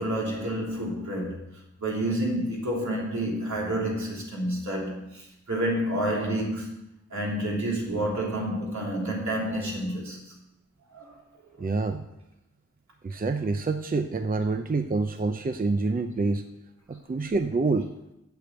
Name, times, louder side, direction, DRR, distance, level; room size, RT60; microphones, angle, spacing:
voice 1, 0.0-1.5 1.8-10.3 10.9-11.2 11.5-11.7, right 1 dB, 70° right, 3.0 m, -29 dB
voice 2, 11.6-12.0 13.0-16.4 16.9-17.9, right 3 dB, 30° right, 0.6 m, -27 dB
8.1 x 6.8 x 8.1 m
wide cardioid pair, 85°, 29 cm